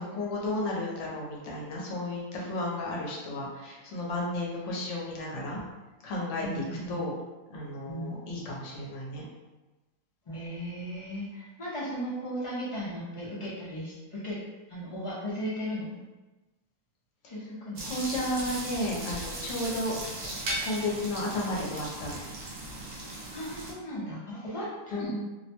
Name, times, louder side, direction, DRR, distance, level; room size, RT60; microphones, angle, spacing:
voice 1, 0.0-5.6 6.0-7.1 7.5-9.2 17.8-20.0 20.6-22.2 24.9-25.1, left 1 dB, 70° left, -3 dB, 1.0 m, -33 dB
voice 2, 6.4-7.0 7.9-8.1 10.3-14.4 14.7-16.0 17.3-17.9 23.3-25.1, equal, 45° left, -7 dB, 0.4 m, -36 dB
sound 1, 17.8-23.7, right 1 dB, 60° right, 0.9 m, -37 dB
2.6 x 2.1 x 2.8 m, 1.1 s
omnidirectional pair, 1.4 m